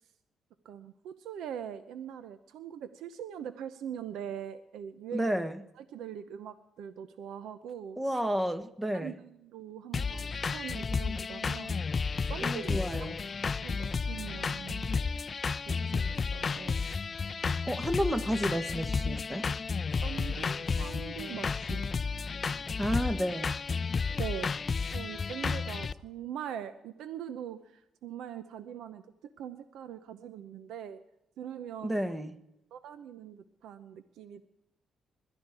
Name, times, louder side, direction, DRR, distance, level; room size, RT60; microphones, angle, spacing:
voice 1, 0.6-5.3 5.8-8.0 8.9-13.1 13.6-15.0 15.7-16.8 20.0-21.9 24.2-24.5 24.9-29.0 29.4-31.0 31.4-32.1 32.7-34.4, right 9 dB, 80° right, 11 dB, 0.8 m, -42 dB
voice 2, 5.1-5.6 8.0-9.1 12.4-13.2 17.7-19.5 22.8-23.5 31.8-32.3, equal, 10° right, 10 dB, 1.4 m, -31 dB
sound 1, 9.9-25.9, left 5 dB, 35° left, 0.5 m, -32 dB
21.0 x 12.5 x 4.8 m, 0.86 s
cardioid pair, 90°, 0 cm